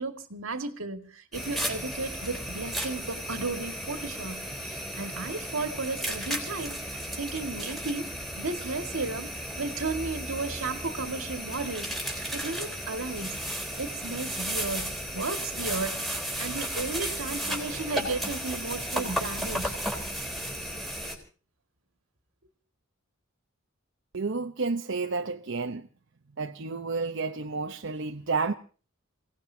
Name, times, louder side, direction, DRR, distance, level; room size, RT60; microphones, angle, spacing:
voice 1, 0.0-9.3 9.6-13.4 13.8-16.0 16.4-19.8, right 3 dB, 80° right, 1.9 m, -34 dB
sound 1, 1.3-21.2, equal, ahead, 3.8 m, -34 dB
voice 2, 24.1-25.9 26.4-28.5, right 4 dB, 65° right, 0.8 m, -31 dB
29.0 x 17.5 x 2.7 m
head